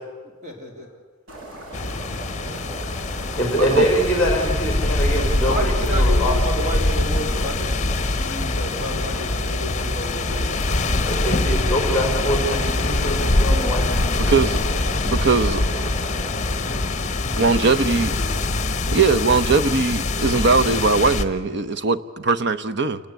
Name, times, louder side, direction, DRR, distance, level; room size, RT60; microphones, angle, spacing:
sound 1, 1.3-16.9, right 1 dB, 85° right, 6.4 m, -38 dB
sound 2, 1.7-21.3, left 2 dB, 35° left, 1.3 m, -23 dB
voice 1, 3.3-6.4 11.0-14.4, equal, 5° left, 0 dB, 4.8 m, -24 dB
voice 2, 5.4-10.6 17.5-18.3, equal, 35° right, 2 dB, 3.7 m, -31 dB
voice 3, 14.2-14.7 15.0-15.9 17.4-18.1 18.9-23.0, right 4 dB, 55° right, 13 dB, 1.0 m, -20 dB
29.0 x 20.0 x 8.3 m, 1.4 s
head